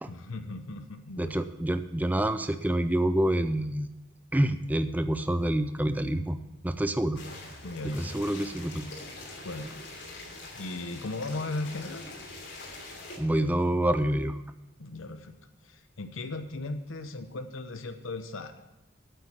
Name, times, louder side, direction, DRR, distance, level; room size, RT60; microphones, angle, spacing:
voice 1, 0.0-1.4 7.6-8.1 9.4-9.7 10.5-12.1 14.8-15.3 15.6-18.6, left 2 dB, 75° left, 8 dB, 0.8 m, -37 dB
voice 2, 1.2-3.9 4.3-6.4 6.6-7.2 7.8-8.9 13.2-14.4, right 1 dB, 10° right, 10 dB, 0.4 m, -27 dB
sound 1, 7.1-13.2, left 2 dB, 60° left, 3.0 m, -43 dB
9.2 x 8.1 x 7.2 m, 0.95 s
head